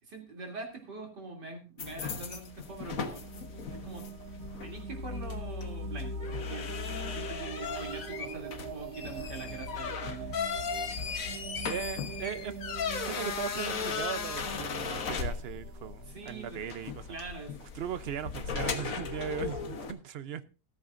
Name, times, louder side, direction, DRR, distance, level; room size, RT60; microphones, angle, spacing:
voice 1, 0.0-3.2 3.7-4.1 4.6-6.7 7.1-10.4 16.1-16.7 17.1-17.7, right 3 dB, 90° right, 3.8 m, -43 dB
sound 1, 1.8-19.9, left 6 dB, 55° left, 1.6 m, -37 dB
sound 2, 2.5-17.1, right 8 dB, 70° right, 1.3 m, -44 dB
sound 3, 7.6-15.7, left 3 dB, 10° left, 8.1 m, -55 dB
voice 2, 11.7-17.2 17.6-20.4, right 9 dB, 50° right, 0.8 m, -38 dB
13.5 x 13.5 x 2.6 m
omnidirectional pair, 1.8 m